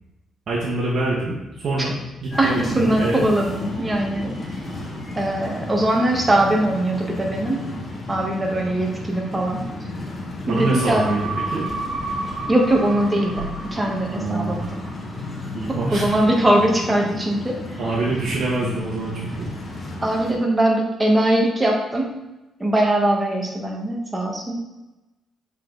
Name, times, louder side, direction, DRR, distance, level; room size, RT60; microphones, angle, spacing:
voice 1, 0.5-1.9 2.2-3.2 10.5-11.6 14.1-14.6 15.5-16.1 17.8-19.5, right 2 dB, 55° right, -6 dB, 1.5 m, -25 dB
sound 1, 2.3-20.3, left 2 dB, 30° left, 1.4 m, -33 dB
voice 2, 2.4-4.3 5.2-7.6 8.1-9.6 10.5-11.1 12.5-13.4 13.7-14.7 15.7-17.5 20.0-22.1 22.6-24.6, right 1 dB, 20° right, 0 dB, 1.6 m, -21 dB
sound 2, 10.5-15.2 15.5-15.6, right 3 dB, 70° right, 1.2 m, -32 dB
7.3 x 4.1 x 4.0 m, 1.0 s
cardioid pair, 90°, 0 cm